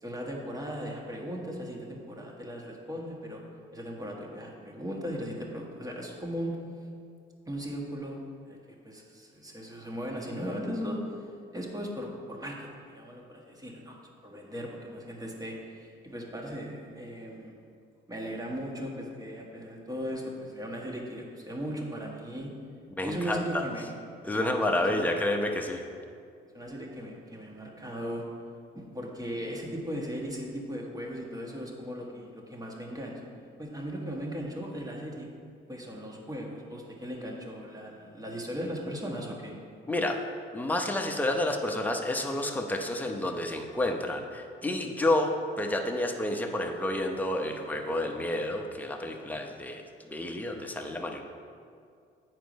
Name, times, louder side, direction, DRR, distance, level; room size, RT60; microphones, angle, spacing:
voice 1, 0.0-3.4 3.7-6.6 7.5-8.2 8.5-8.6 8.8-11.3 11.5-14.0 14.2-17.5 18.1-22.5 23.0-23.8 24.3-25.0 26.5-28.3 28.7-33.3 33.6-35.3 35.7-39.6, equal, 20° right, -1 dB, 1.5 m, -37 dB
voice 2, 23.0-23.6 24.2-25.8 39.9-40.2 40.5-45.3 45.6-49.8 50.1-51.2, left 1 dB, 10° left, 2 dB, 0.8 m, -29 dB
8.5 x 4.6 x 5.3 m, 2.3 s
cardioid pair, 90°, 20 cm